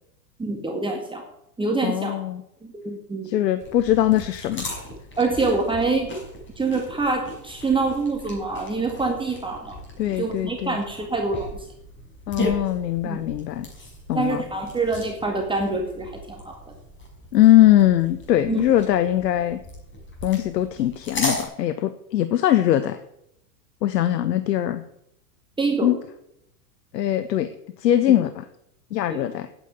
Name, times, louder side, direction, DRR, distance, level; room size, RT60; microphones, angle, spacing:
voice 1, 0.4-1.2 1.6-2.2 2.6-3.4 5.2-6.1 6.6-9.8 10.2-11.7 13.0-13.3 14.1-16.7 18.5-18.6 25.6-25.9 29.1-29.2, right 3 dB, 10° right, 1 dB, 2.0 m, -26 dB
voice 2, 1.8-2.4 3.2-4.7 10.0-10.8 12.3-13.7 14.1-14.4 17.3-19.6 20.2-23.0 23.8-24.8 25.8-26.0 26.9-27.5 27.8-28.4 28.9-29.5, left 12 dB, 85° left, 12 dB, 1.0 m, -21 dB
sound 1, 3.6-21.4, left 1 dB, 25° left, 5.5 m, -36 dB
9.3 x 8.4 x 9.1 m, 0.78 s
hypercardioid pair, 120°, 48 cm